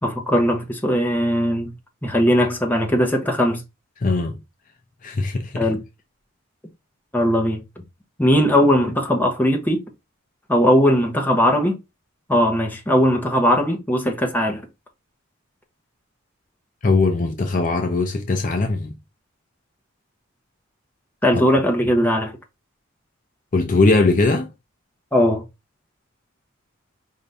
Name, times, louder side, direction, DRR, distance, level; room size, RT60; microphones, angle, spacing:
voice 1, 0.0-1.7 2.0-3.6 5.5-5.8 7.1-7.6 8.2-9.8 10.5-11.7 12.3-14.6 21.2-22.3 25.1-25.4, equal, 10° left, 0.8 m, -19 dB
voice 2, 4.0-4.4 5.0-5.7 16.8-19.0 21.3-21.4 23.5-24.5, left 3 dB, 40° left, 0.5 m, -20 dB
5.1 x 2.7 x 3.4 m
head